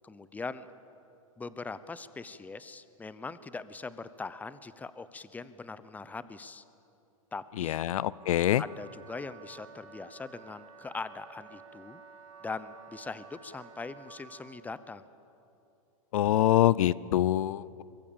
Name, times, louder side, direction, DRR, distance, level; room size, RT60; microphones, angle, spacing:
voice 1, 0.0-0.7 1.4-6.6 7.3-7.8 8.6-12.0 12.4-15.0, left 4 dB, 10° left, 14 dB, 0.8 m, -41 dB
voice 2, 7.6-8.6 16.1-17.8, left 13 dB, 70° left, 21 dB, 0.5 m, -25 dB
Wind instrument woodwind instrument, 8.1-14.6, right 6 dB, 80° right, 4.8 m, -52 dB
24.0 x 22.0 x 7.3 m, 2.8 s
hypercardioid pair, 120°, 18 cm